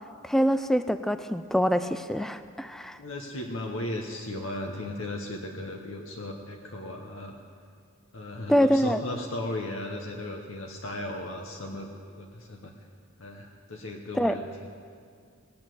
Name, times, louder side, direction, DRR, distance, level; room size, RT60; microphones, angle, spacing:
voice 1, 0.2-3.0 8.5-9.0 14.1-14.4, equal, ahead, 12 dB, 0.3 m, -25 dB
voice 2, 3.0-7.4 8.1-11.9 12.1-12.7 13.2-14.7, left 1 dB, 65° left, 1 dB, 1.0 m, -36 dB
18.5 x 8.7 x 7.7 m, 2.2 s
head